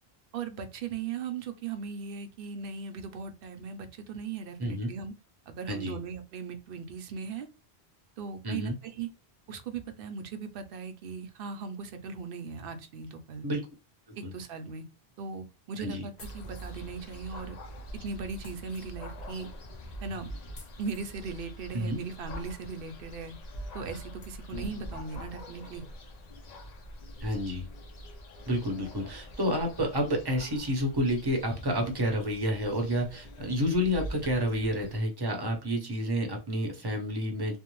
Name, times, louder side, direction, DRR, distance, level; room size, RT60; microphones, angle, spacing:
voice 1, 0.3-5.1 5.5-7.5 8.2-9.1 9.5-13.5 14.2-14.8 15.2-17.6 18.0-19.5 20.0-20.3 20.8-23.3 23.7-25.8, right 5 dB, 65° right, 7 dB, 0.7 m, -38 dB
voice 2, 5.7-6.0 8.4-8.7 13.4-13.7 14.1-14.3 15.8-16.1 21.7-22.0 27.2-27.7 28.5-37.6, equal, 25° right, 2 dB, 0.6 m, -29 dB
sound 1, 16.2-16.9 18.4-18.9 20.5-21.1 23.0-23.1 23.6-23.7 24.2-24.4, left 2 dB, 75° left, 1.1 m, -52 dB
sound 2, 16.2-35.0, equal, 50° left, 0.5 m, -44 dB
2.6 x 2.1 x 2.9 m, 0.28 s
omnidirectional pair, 1.1 m